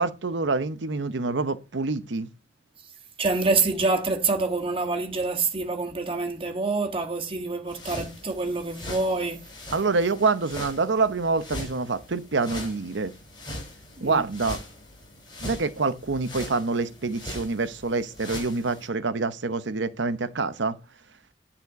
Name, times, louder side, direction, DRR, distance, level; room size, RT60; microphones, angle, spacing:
voice 1, 0.0-2.3 9.7-13.1 14.0-14.6 15.4-20.8, right 3 dB, 75° right, 0.8 m, -26 dB
voice 2, 3.2-9.4 14.0-14.2, right 3 dB, 30° right, 1.6 m, -26 dB
sound 1, 7.7-18.9, left 1 dB, 25° left, 4.9 m, -40 dB
11.0 x 4.3 x 6.5 m
head